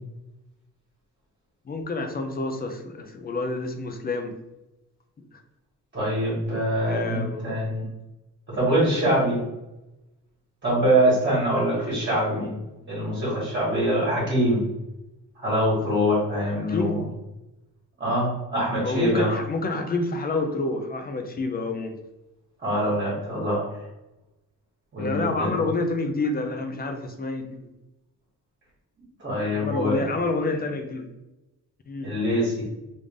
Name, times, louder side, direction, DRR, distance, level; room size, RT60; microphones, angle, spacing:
voice 1, 1.7-4.3 6.8-7.5 11.5-12.1 16.6-17.0 18.8-22.0 25.0-27.7 29.4-31.1 31.9-32.1, left 3 dB, 25° left, 6 dB, 0.4 m, -28 dB
voice 2, 5.9-7.8 8.5-9.4 10.6-12.5 12.9-14.6 15.4-17.0 18.0-19.3 22.6-23.7 24.9-25.6 29.2-30.0 32.0-32.6, equal, 30° right, -7 dB, 1.4 m, -24 dB
3.2 x 2.6 x 3.5 m, 0.98 s
wide cardioid pair, 175°, 36 cm